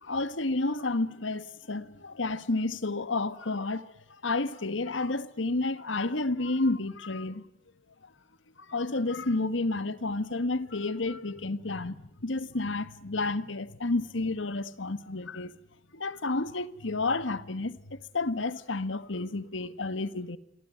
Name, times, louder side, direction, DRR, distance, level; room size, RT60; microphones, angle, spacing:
voice 1, 0.0-3.9 4.2-7.4 8.7-15.5 15.9-20.4, left 2 dB, 85° left, 1.5 m, -31 dB
28.0 x 22.5 x 9.3 m
head